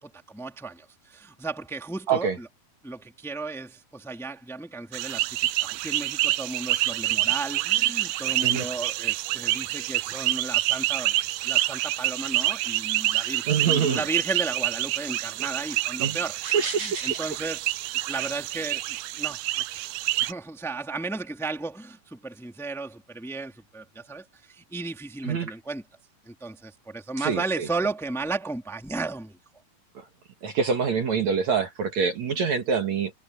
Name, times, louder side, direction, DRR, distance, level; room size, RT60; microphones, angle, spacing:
voice 1, 0.0-2.5 2.8-11.2 11.4-17.7 18.1-19.9 20.2-25.9 26.3-29.4, right 3 dB, ahead, 2.1 m, -34 dB
sound 1, 4.9-20.3, right 16 dB, 85° right, 2.6 m, -27 dB
voice 2, 13.5-14.0 16.0-16.2 16.4-17.2 25.3-25.5 27.3-27.4 30.4-33.1, right 6 dB, 55° right, 2.8 m, -25 dB
omnidirectional pair, 4.4 m